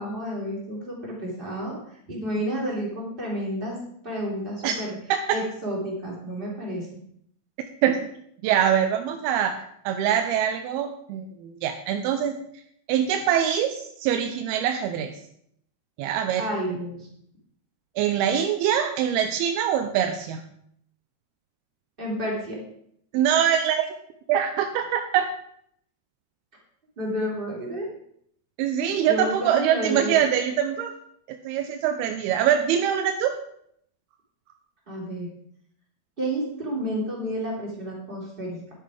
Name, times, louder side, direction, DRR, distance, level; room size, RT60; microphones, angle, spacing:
voice 1, 0.0-1.8 2.1-3.8 4.0-5.0 5.3-6.9 16.4-17.1 22.0-22.6 27.0-27.9 29.0-30.2 34.9-35.3 36.2-38.6, equal, 15° right, -3 dB, 3.0 m, -30 dB
voice 2, 8.4-12.4 12.9-15.1 16.0-16.5 18.0-20.4 23.1-23.9 24.3-25.3 28.6-30.9 31.5-33.3, right 9 dB, 80° right, 6 dB, 2.5 m, -24 dB
10.5 x 8.5 x 5.0 m, 0.70 s
omnidirectional pair, 4.7 m